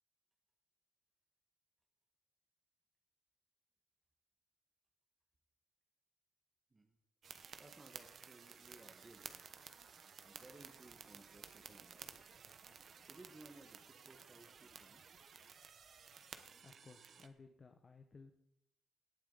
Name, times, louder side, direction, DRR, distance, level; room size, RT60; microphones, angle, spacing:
sound 1, 7.2-17.3, right 6 dB, 55° right, 1.1 m, -55 dB
voice 1, 7.6-9.5 10.2-12.4 13.1-15.2, right 2 dB, 25° right, 2 dB, 1.4 m, -61 dB
voice 2, 16.6-18.3, left 4 dB, 35° left, 5 dB, 1.1 m, -59 dB
18.0 x 8.8 x 4.0 m, 0.79 s
cardioid pair, 90°, 0 cm